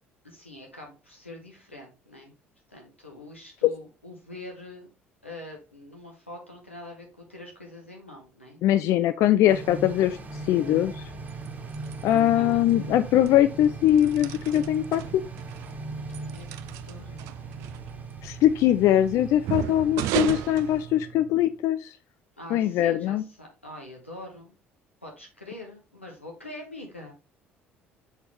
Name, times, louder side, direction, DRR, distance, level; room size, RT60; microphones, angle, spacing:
voice 1, 0.2-2.3 2.7-4.9 5.2-8.6 12.1-12.7 16.2-16.5 16.8-17.8 22.4-24.5 25.0-27.1, left 1 dB, 90° left, 0 dB, 1.2 m, -44 dB
voice 2, 8.6-11.0 12.0-15.2 18.2-22.0 22.5-23.2, left 12 dB, 50° left, 12 dB, 0.3 m, -22 dB
sound 1, 9.5-20.8, right 2 dB, 25° right, 1.5 m, -40 dB
sound 2, 11.0-21.5, right 12 dB, 60° right, 0.4 m, -36 dB
6.9 x 4.2 x 3.3 m, 0.32 s
figure-of-eight pair, 55°, 6 cm